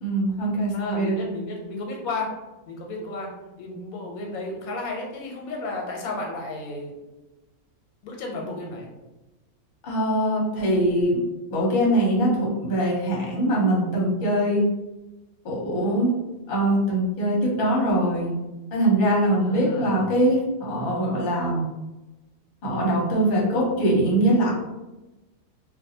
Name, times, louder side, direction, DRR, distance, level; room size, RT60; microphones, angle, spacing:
voice 1, 0.0-1.3 9.8-11.2 11.5-14.6 15.4-16.1 16.5-18.3 18.7-21.7 22.6-24.5, right 1 dB, 45° left, -4 dB, 0.8 m, -22 dB
voice 2, 0.7-2.3 2.7-3.3 3.6-6.9 8.0-8.9 19.4-20.0, left 2 dB, 90° left, 0 dB, 1.1 m, -33 dB
2.5 x 2.2 x 2.7 m, 1.0 s
omnidirectional pair, 1.5 m